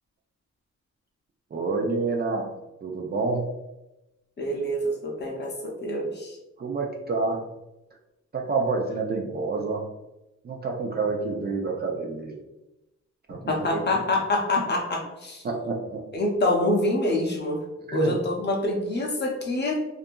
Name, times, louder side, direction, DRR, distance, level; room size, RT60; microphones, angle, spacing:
voice 1, 1.5-2.5 2.8-3.4 6.6-7.4 8.3-9.8 10.4-12.4 13.3-13.8 15.4-16.0 17.9-18.1, right 3 dB, 35° right, 0 dB, 0.4 m, -28 dB
voice 2, 4.4-6.4 13.5-15.4 16.1-17.6 17.9-19.8, left 1 dB, 35° left, 0 dB, 0.6 m, -26 dB
2.6 x 2.4 x 2.2 m, 0.95 s
wide cardioid pair, 125°, 29 cm